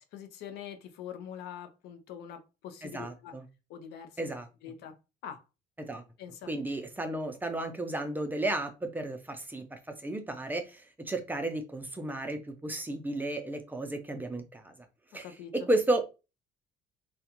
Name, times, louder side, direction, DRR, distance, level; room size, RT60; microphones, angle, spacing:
voice 1, 0.1-3.4 3.7-4.1 4.6-5.0 5.2-5.4 6.2-6.5 15.2-15.5, left 9 dB, 80° left, 7 dB, 0.5 m, -44 dB
voice 2, 2.8-3.4 4.2-4.5 5.8-6.0 6.5-14.7 15.1-16.0, right 2 dB, 10° right, 5 dB, 0.4 m, -33 dB
2.4 x 2.2 x 2.8 m, 0.28 s
cardioid pair, 110°, 17 cm